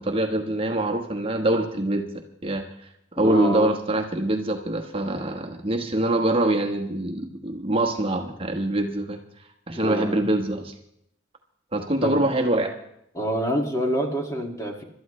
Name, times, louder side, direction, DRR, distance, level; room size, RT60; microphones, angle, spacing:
voice 1, 0.0-2.1 2.4-10.7 11.7-12.7, right 1 dB, 30° right, 2 dB, 1.2 m, -24 dB
voice 2, 3.2-3.7 9.7-10.2 12.0-12.2 13.1-14.8, right 1 dB, 15° left, 1 dB, 2.1 m, -27 dB
26.0 x 13.0 x 3.2 m, 0.75 s
head